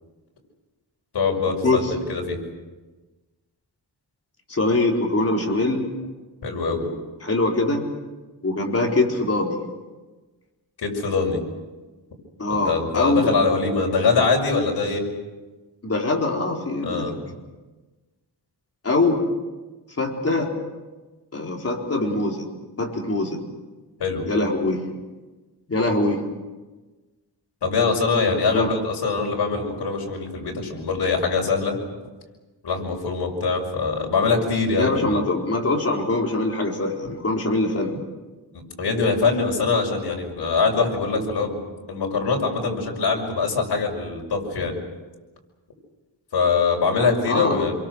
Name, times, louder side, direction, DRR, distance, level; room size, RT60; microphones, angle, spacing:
voice 1, 1.1-2.4 6.4-6.9 10.8-11.4 12.5-15.1 16.8-17.2 24.0-24.2 27.6-31.8 32.6-35.2 38.5-41.6 41.9-44.7 46.3-47.7, left 4 dB, 85° left, 1 dB, 6.0 m, -23 dB
voice 2, 4.5-5.9 7.2-7.8 8.4-9.6 12.4-13.3 15.8-17.1 18.8-19.2 20.0-20.5 21.3-22.4 22.8-23.4 24.3-24.8 25.7-26.2 28.5-28.7 34.8-38.0 47.3-47.6, left 2 dB, 35° left, 0 dB, 4.4 m, -23 dB
27.5 x 23.0 x 6.4 m, 1.2 s
wide cardioid pair, 130°, 40 cm